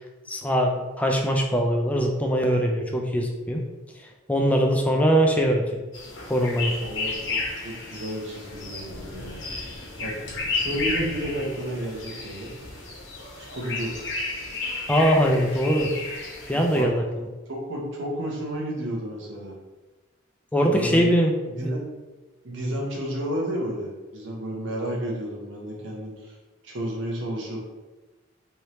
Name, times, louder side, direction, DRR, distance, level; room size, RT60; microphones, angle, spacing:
voice 1, 0.3-3.6 4.3-5.6 6.3-6.7 14.9-15.9 16.5-17.0 20.5-21.3 21.6-21.7, equal, 5° left, 1 dB, 0.4 m, -22 dB
sound 1, 5.9-16.8, left 3 dB, 65° left, 0.9 m, -33 dB
voice 2, 6.8-9.5 10.0-10.1 10.5-12.5 13.4-13.9 16.5-16.9 17.5-19.6 20.6-21.1 21.5-21.8 22.4-26.4 26.6-27.6, right 1 dB, 65° right, -2 dB, 0.9 m, -31 dB
3.3 x 2.8 x 3.0 m, 1.2 s
head